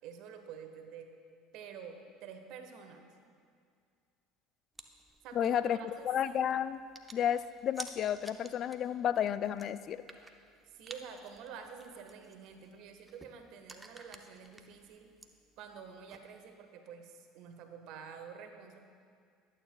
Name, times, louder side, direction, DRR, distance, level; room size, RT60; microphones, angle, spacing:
voice 1, 0.0-1.1 1.5-3.1 5.2-6.5 10.7-15.1 15.6-18.8, right 6 dB, 60° right, 6 dB, 1.2 m, -49 dB
sound 1, 4.8-16.5, right 2 dB, 15° right, 0.8 m, -54 dB
voice 2, 5.4-5.8 6.0-6.8 7.1-10.0, left 9 dB, 50° left, 14 dB, 0.3 m, -31 dB
20.5 x 9.1 x 2.3 m, 2.2 s
hypercardioid pair, 70°, 0 cm